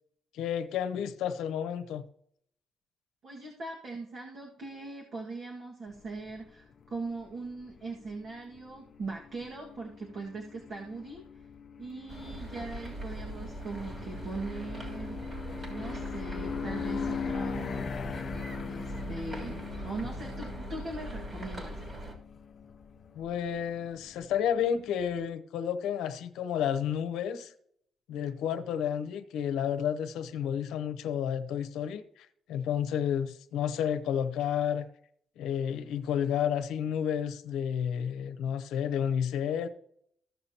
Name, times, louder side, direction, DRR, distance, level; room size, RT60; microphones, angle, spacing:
voice 1, 0.3-2.0 23.1-27.5 28.1-34.9 35.4-39.7, left 8 dB, 90° left, 0.8 m, -31 dB
voice 2, 3.2-11.5 11.8-15.4 15.7-17.9 18.1-18.3 18.7-21.8, right 3 dB, 55° right, 1.8 m, -40 dB
sound 1, 5.9-25.2, left 6 dB, 50° left, 0.6 m, -41 dB
sound 2, 12.1-22.2, right 1 dB, 35° right, 3.1 m, -41 dB
15.0 x 6.9 x 2.9 m
cardioid pair, 90°, 0 cm